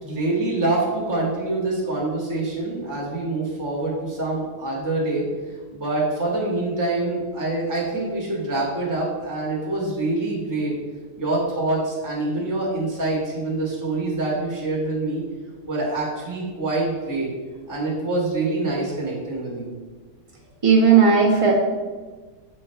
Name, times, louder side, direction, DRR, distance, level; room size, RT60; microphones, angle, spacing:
voice 1, 0.0-5.2 5.7-10.7 11.2-15.2 15.7-17.3 17.7-19.7, right 2 dB, 10° right, -4 dB, 1.4 m, -25 dB
voice 2, 20.6-21.5, right 5 dB, 40° right, -3 dB, 0.4 m, -15 dB
7.6 x 3.1 x 4.5 m, 1.4 s
omnidirectional pair, 2.3 m